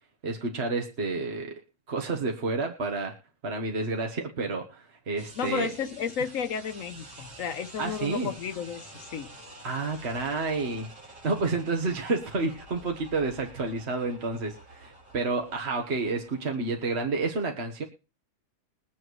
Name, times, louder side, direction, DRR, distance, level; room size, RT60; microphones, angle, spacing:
voice 1, 0.2-1.5 1.9-3.1 3.4-5.7 7.8-8.3 9.6-10.9 11.2-17.8, right 3 dB, 50° right, 2 dB, 1.6 m, -30 dB
sound 1, 5.2-17.2, right 1 dB, 75° right, 2.9 m, -49 dB
voice 2, 5.4-9.4, left 7 dB, 70° left, 10 dB, 1.1 m, -33 dB
22.5 x 7.5 x 3.1 m, 0.33 s
omnidirectional pair, 1.5 m